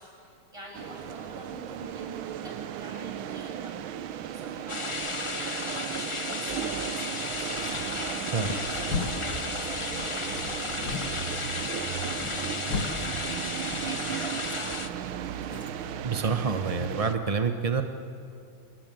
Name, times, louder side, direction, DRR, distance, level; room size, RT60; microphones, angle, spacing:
voice 1, 0.0-15.4, equal, 15° right, -2 dB, 7.4 m, -47 dB
sound 1, 0.7-17.1, right 10 dB, 80° right, 1.6 m, -36 dB
sound 2, 4.7-14.9, left 3 dB, 45° left, 0.4 m, -34 dB
sound 3, 7.5-16.0, left 4 dB, 80° left, 2.8 m, -38 dB
voice 2, 16.0-17.8, right 5 dB, 45° right, 6 dB, 0.4 m, -27 dB
25.5 x 21.0 x 9.1 m, 2.6 s
omnidirectional pair, 2.3 m